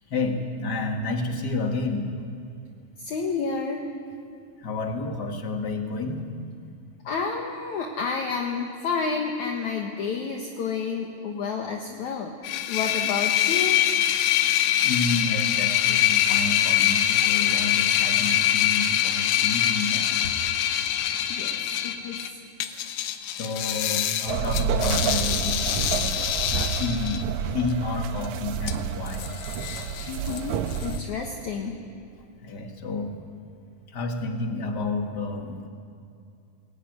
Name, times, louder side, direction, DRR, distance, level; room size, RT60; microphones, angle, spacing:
voice 1, 0.1-2.1 4.6-6.2 6.6-6.7 14.8-20.3 23.3-26.1 26.5-27.2 27.5-29.3 32.4-33.1 33.9-35.7, left 3 dB, 35° left, 3 dB, 1.8 m, -30 dB
voice 2, 3.0-3.8 7.1-13.8 21.3-21.6 21.8-22.2 30.1-31.7, left 5 dB, 60° left, 1 dB, 2.3 m, -30 dB
sound 1, 12.4-22.3 22.6-27.2 28.2-28.3 28.7-28.8 29.1-30.4 30.7-31.0, left 11 dB, 90° left, 3.0 m, -24 dB
sound 2, 24.3-31.0, right 7 dB, 75° right, 1.8 m, -29 dB
22.0 x 16.5 x 9.5 m, 2.5 s
omnidirectional pair, 4.4 m